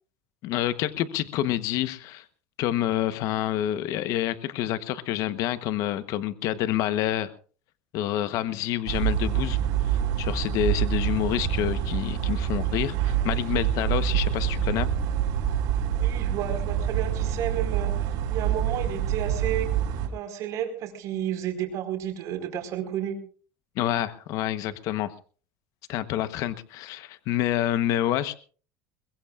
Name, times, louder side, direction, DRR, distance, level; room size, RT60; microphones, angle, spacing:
voice 1, 0.4-2.2 2.6-7.3 7.9-9.6 9.8-14.9 23.8-25.1 25.9-28.3, left 12 dB, 60° left, 13 dB, 1.1 m, -28 dB
sound 1, 8.9-20.1, right 9 dB, 70° right, 4.9 m, -26 dB
voice 2, 16.0-19.7 20.1-23.2, right 10 dB, 50° right, 5 dB, 4.7 m, -32 dB
22.0 x 21.5 x 2.5 m, 0.40 s
cardioid pair, 135°, 7 cm